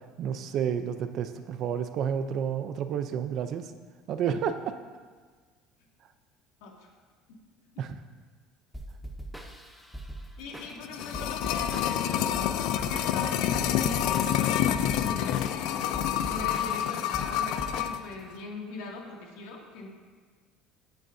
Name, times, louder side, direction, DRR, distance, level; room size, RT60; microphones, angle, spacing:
voice 1, 0.2-3.6 4.1-4.7 7.8-8.0, right 8 dB, 40° right, 9 dB, 0.6 m, -30 dB
sound 1, 8.7-18.3, right 1 dB, ahead, 0.7 m, -42 dB
voice 2, 10.4-16.0 16.2-19.9, left 3 dB, 90° left, -1 dB, 2.4 m, -40 dB
sound 2, 10.6-18.0 18.3-18.4, left 10 dB, 60° left, 0.5 m, -28 dB
15.5 x 9.0 x 2.7 m, 1.5 s
cardioid pair, 170°, 0 cm